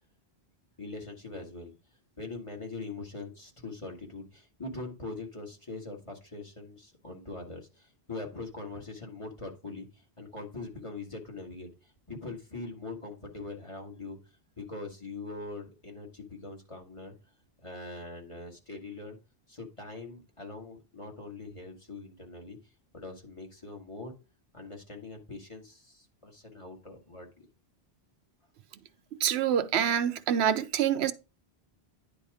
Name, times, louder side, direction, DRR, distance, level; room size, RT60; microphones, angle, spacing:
voice 1, 0.8-1.7 2.2-11.7 12.1-14.2 14.6-17.1 17.6-19.2 19.5-22.6 22.9-24.1 24.5-27.5, left 3 dB, 30° left, 1.8 m, -42 dB
voice 2, 29.2-31.1, right 9 dB, 85° right, 0.9 m, -26 dB
9.9 x 4.2 x 4.9 m
omnidirectional pair, 1.1 m